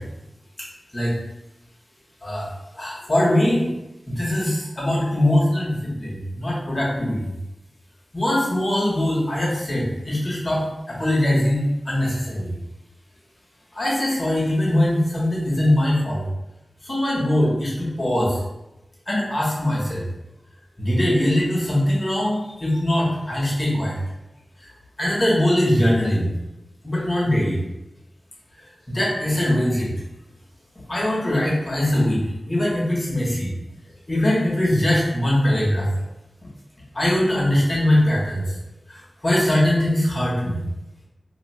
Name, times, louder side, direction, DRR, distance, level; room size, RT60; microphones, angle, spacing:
voice 1, 2.8-3.7 4.1-7.3 8.1-12.5 13.7-16.2 16.9-18.4 19.1-20.1 20.8-24.0 25.0-26.3 26.8-27.6 28.9-29.9 30.9-33.5 34.1-35.9 36.9-38.5 38.9-40.6, left 1 dB, 40° left, -5 dB, 1.3 m, -21 dB
2.7 x 2.4 x 4.1 m, 0.92 s
wide cardioid pair, 70°, 0 cm